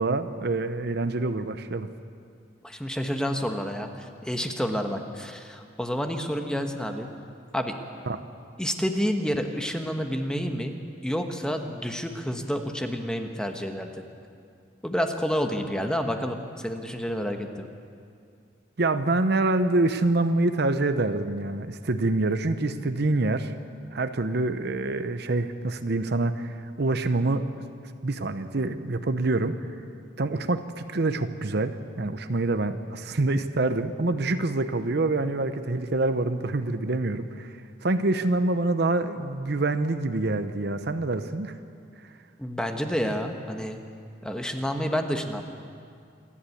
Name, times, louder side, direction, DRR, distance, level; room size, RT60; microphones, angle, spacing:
voice 1, 0.0-1.9 8.1-8.2 18.8-23.5 23.9-27.5 28.0-29.6 30.2-41.6, right 2 dB, 60° right, 10 dB, 0.8 m, -26 dB
voice 2, 2.6-7.1 7.5-7.7 8.6-10.7 11.0-13.9 14.8-17.7 42.4-43.8 44.2-45.4, equal, 5° left, 4 dB, 1.3 m, -29 dB
27.5 x 11.5 x 8.6 m, 2.3 s
head